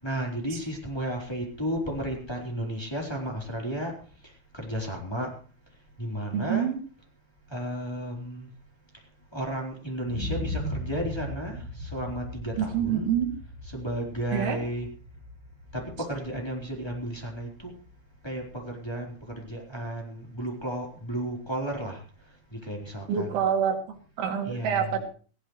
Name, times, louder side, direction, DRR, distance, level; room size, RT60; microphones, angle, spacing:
voice 1, 0.0-3.9 4.2-5.3 6.0-6.7 7.5-8.5 9.3-13.1 13.6-14.9 15.7-17.7 18.2-22.0 22.5-23.4 24.4-25.0, right 1 dB, 5° left, -2 dB, 3.2 m, -33 dB
voice 2, 6.3-6.8 12.6-13.3 14.3-14.6 23.1-25.0, right 8 dB, 75° right, 2 dB, 4.9 m, -27 dB
sound 1, 10.0-17.9 18.4-18.5, left 1 dB, 25° right, 6.6 m, -38 dB
19.0 x 16.0 x 3.2 m, 0.39 s
omnidirectional pair, 5.5 m